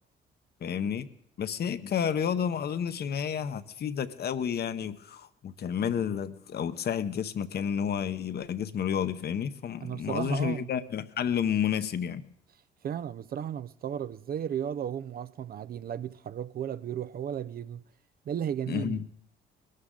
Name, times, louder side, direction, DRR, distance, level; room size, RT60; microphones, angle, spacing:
voice 1, 0.6-1.1 1.4-12.2 18.7-19.0, left 8 dB, 55° left, 0.8 m, -30 dB
voice 2, 9.8-10.7 12.8-17.8 18.3-19.0, right 9 dB, 50° right, 0.4 m, -34 dB
21.0 x 13.0 x 3.8 m
cardioid pair, 90°, 20 cm